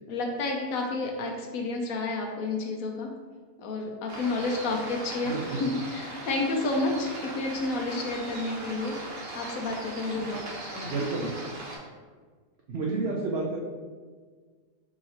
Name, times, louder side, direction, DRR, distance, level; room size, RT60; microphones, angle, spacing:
voice 1, 0.1-3.1 3.6-9.0 9.3-10.9, left 2 dB, 70° left, 1 dB, 0.9 m, -30 dB
sound 1, 4.1-11.8, right 1 dB, 55° right, 1.2 m, -39 dB
voice 2, 5.2-5.6 10.8-11.3 12.7-13.6, right 3 dB, 80° right, -2 dB, 0.5 m, -30 dB
4.7 x 2.9 x 2.8 m, 1.5 s
omnidirectional pair, 1.7 m